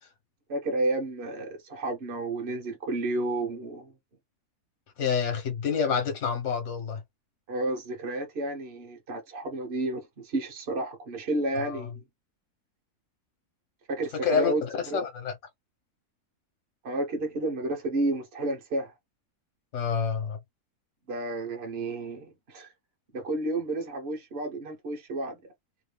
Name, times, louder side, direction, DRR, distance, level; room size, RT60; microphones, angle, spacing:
voice 1, 0.5-3.9 7.5-12.0 13.9-15.0 16.8-18.9 21.1-22.7 23.1-25.4, right 2 dB, 45° right, 1.3 m, -31 dB
voice 2, 5.0-7.0 11.5-11.9 14.2-15.3 19.7-20.4, left 6 dB, 55° left, 1.3 m, -28 dB
3.1 x 2.5 x 3.4 m
omnidirectional pair, 1.6 m